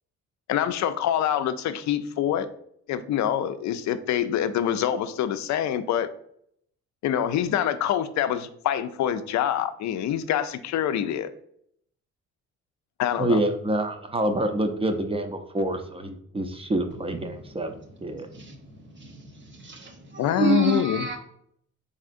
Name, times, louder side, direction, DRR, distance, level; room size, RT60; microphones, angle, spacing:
voice 1, 0.5-2.5 2.9-6.1 7.0-11.3 13.0-13.4 20.2-21.1, left 10 dB, 70° left, 0.5 m, -25 dB
voice 2, 13.2-17.7 18.0-18.3, right 1 dB, 20° right, 0.5 m, -27 dB
voice 3, 19.6-21.2, right 2 dB, 40° right, 1.0 m, -26 dB
4.2 x 3.6 x 2.5 m
cardioid pair, 90°, 30 cm